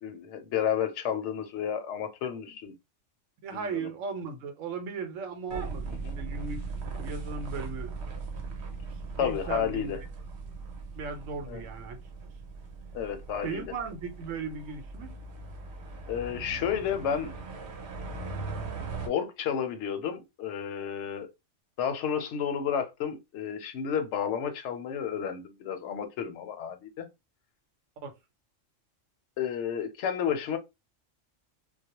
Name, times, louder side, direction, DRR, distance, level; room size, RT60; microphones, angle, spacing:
voice 1, 0.0-2.7 3.5-3.9 6.0-6.1 9.2-10.0 11.5-11.6 12.9-13.6 16.1-17.3 19.0-21.3 21.8-27.1 29.4-30.6, left 8 dB, 70° left, 0.8 m, -31 dB
voice 2, 3.4-6.6 6.9-7.9 9.1-10.0 11.0-12.0 13.4-15.1 28.0-28.1, right 5 dB, 85° right, 1.0 m, -37 dB
sound 1, 5.5-19.1, right 4 dB, 60° right, 0.9 m, -39 dB
2.3 x 2.0 x 2.8 m
omnidirectional pair, 1.3 m